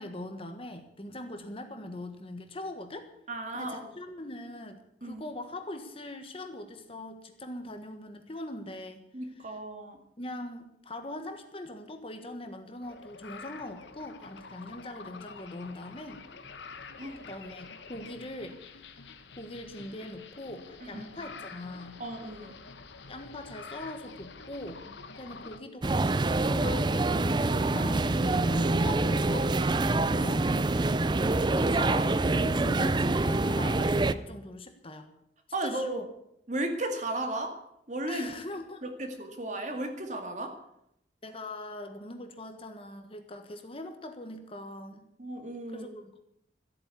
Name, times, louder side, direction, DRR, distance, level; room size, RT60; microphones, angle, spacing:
voice 1, 0.0-3.1 3.5-9.0 9.3-9.6 10.2-16.2 17.2-18.9 19.4-22.0 23.1-24.8 25.2-30.5 31.5-35.1 35.6-36.1 38.1-38.8 41.2-45.1 45.7-46.2, left 1 dB, 30° left, 6 dB, 1.5 m, -42 dB
voice 2, 3.3-3.9 5.0-5.2 9.1-10.0 17.0-17.2 20.9-21.1 22.0-22.5 35.5-36.0 36.5-37.5 37.9-38.3 38.8-40.5 45.2-45.9, right 1 dB, 40° right, 5 dB, 2.1 m, -34 dB
sound 1, 12.8-25.6, left 4 dB, 80° left, 1.2 m, -47 dB
sound 2, 25.8-34.1, right 2 dB, 25° right, 0.5 m, -26 dB
14.0 x 8.8 x 8.4 m, 0.76 s
head